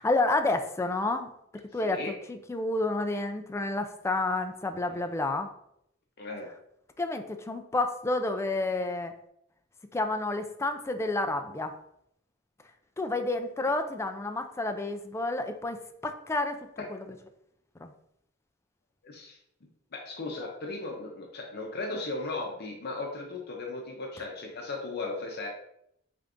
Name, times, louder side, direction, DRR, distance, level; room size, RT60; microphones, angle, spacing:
voice 1, 0.0-1.3 1.7-2.0 2.3-5.5 7.0-9.1 9.9-11.7 13.0-17.0 17.8-17.9, left 2 dB, 15° left, 6 dB, 0.3 m, -30 dB
voice 2, 1.8-2.1 6.2-6.5 13.6-13.7 19.0-19.4 19.9-25.5, left 3 dB, 55° left, 0 dB, 0.7 m, -36 dB
5.1 x 3.3 x 2.5 m, 0.76 s
head